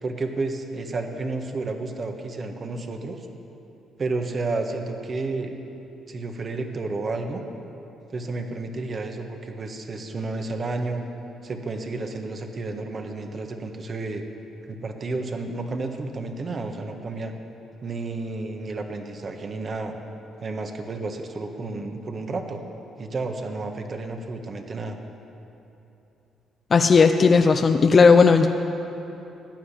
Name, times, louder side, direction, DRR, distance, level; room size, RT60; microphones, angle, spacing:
voice 1, 0.0-3.3 4.0-5.6 6.1-7.4 8.1-11.0 11.4-14.2 14.7-17.3 17.8-20.0 20.4-22.6 23.0-25.0, right 3 dB, 45° right, 5 dB, 1.6 m, -31 dB
voice 2, 26.7-28.5, left 5 dB, 40° left, 7 dB, 0.6 m, -15 dB
15.0 x 10.0 x 8.3 m, 3.0 s
cardioid pair, 80°, 0 cm